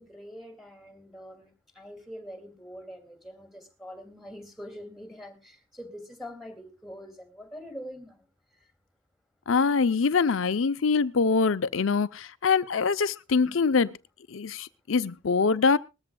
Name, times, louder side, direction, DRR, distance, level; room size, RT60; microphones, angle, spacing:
voice 1, 0.0-8.2, equal, ahead, 2.5 m, -44 dB
voice 2, 9.5-13.9 14.3-15.8, left 5 dB, 85° left, 0.6 m, -24 dB
20.0 x 13.5 x 2.3 m
head